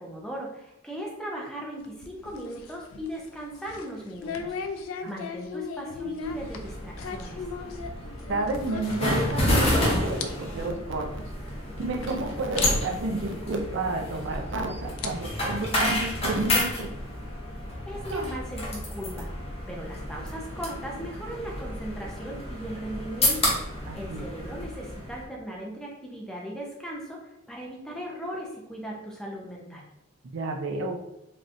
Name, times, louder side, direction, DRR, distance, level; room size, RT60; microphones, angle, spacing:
voice 1, 0.0-4.6 5.1-7.4 17.9-19.3 19.7-23.5 23.9-29.9, equal, 5° left, -2 dB, 0.5 m, -38 dB
sound 1, 1.8-9.7 10.0-10.3 10.6-10.7 11.4-11.5 12.0-12.1 12.6-12.7 14.0-14.1 14.8-16.2, left 5 dB, 85° left, 0.3 m, -38 dB
sound 2, 6.2-25.2, left 1 dB, 30° left, 0.8 m, -30 dB
voice 2, 8.3-11.3 11.8-16.9 18.1-18.2 23.9-24.2 30.3-31.0, right 2 dB, 60° right, 3 dB, 0.4 m, -31 dB
3.4 x 2.6 x 2.5 m, 0.82 s
head